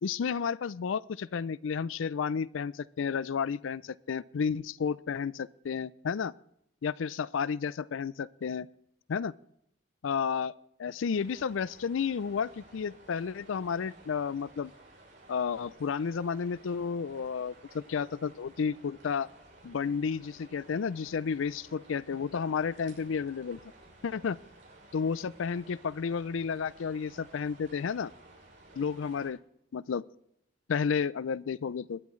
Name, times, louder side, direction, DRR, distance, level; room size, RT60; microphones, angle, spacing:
voice 1, 0.0-6.3 6.8-8.7 9.1-9.3 10.0-10.5 10.8-14.7 15.3-19.3 19.6-23.6 24.0-24.4 24.9-28.1 28.8-29.4 29.7-30.0 30.7-32.0, left 6 dB, 85° left, 20 dB, 0.4 m, -32 dB
sound 1, 11.1-29.3, right 2 dB, 75° right, 6.6 m, -56 dB
21.0 x 12.0 x 3.2 m, 0.77 s
head